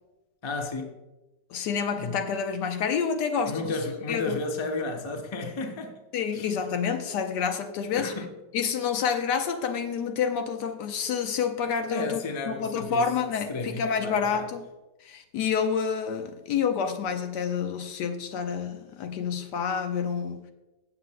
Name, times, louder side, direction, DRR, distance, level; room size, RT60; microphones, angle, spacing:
voice 1, 0.4-0.9 2.0-2.1 3.5-6.0 6.3-6.5 8.0-8.3 11.9-13.0 13.5-14.5, left 3 dB, 25° left, 0.6 m, -32 dB
voice 2, 1.5-3.8 4.1-4.4 6.1-8.1 8.5-14.6 15.0-20.5, left 6 dB, 80° left, 1.4 m, -28 dB
17.0 x 6.5 x 2.2 m
omnidirectional pair, 1.8 m